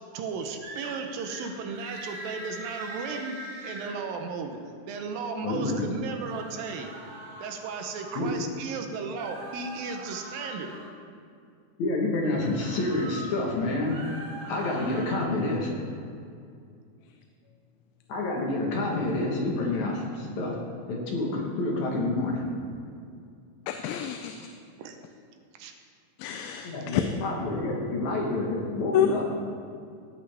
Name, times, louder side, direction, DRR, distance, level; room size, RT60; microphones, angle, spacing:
voice 1, 0.1-3.4 3.6-4.6 4.9-6.9 7.4-10.8 24.8-25.0 25.6-25.7, right 5 dB, 75° right, 5 dB, 2.4 m, -35 dB
sound 1, 0.6-0.9 1.2-1.5 1.8-4.0 6.0-8.2 9.1-10.9 12.3-13.3 13.8-15.2, right 1 dB, 60° right, 3.1 m, -42 dB
voice 2, 5.4-5.9 8.2-8.3 11.8-14.0 14.5-15.7 18.1-20.6 20.9-22.4 26.6-29.3, left 2 dB, 60° left, -1 dB, 2.3 m, -28 dB
voice 3, 23.7-24.4 26.2-27.0 28.9-29.1, left 11 dB, 85° left, 6 dB, 2.4 m, -27 dB
16.5 x 8.4 x 3.4 m, 2.4 s
omnidirectional pair, 4.3 m